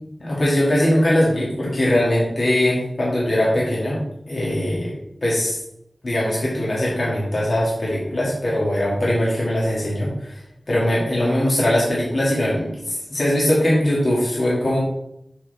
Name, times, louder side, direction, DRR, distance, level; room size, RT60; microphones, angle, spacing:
voice 1, 0.2-4.0 4.3-4.9 5.2-5.6 6.0-10.4 10.7-14.8, left 1 dB, 70° left, -6 dB, 2.4 m, -21 dB
7.4 x 4.6 x 4.3 m, 0.77 s
wide cardioid pair, 50°, 0 cm